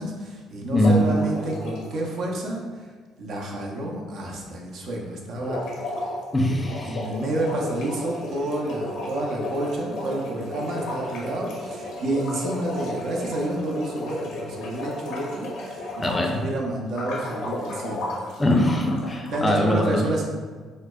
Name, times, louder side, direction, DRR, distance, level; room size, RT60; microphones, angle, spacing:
voice 1, 0.0-2.6 3.2-5.6 6.8-18.1 19.3-20.3, right 1 dB, 65° right, -1 dB, 0.5 m, -29 dB
voice 2, 0.7-1.0 6.3-7.1 16.0-16.4 18.4-20.1, left 1 dB, 25° left, 2 dB, 0.5 m, -22 dB
sound 1, 0.8-2.0 5.3-16.4 16.9-19.4, left 2 dB, 75° left, 0.7 m, -33 dB
4.1 x 2.0 x 2.3 m, 1.5 s
supercardioid pair, 60°, 0 cm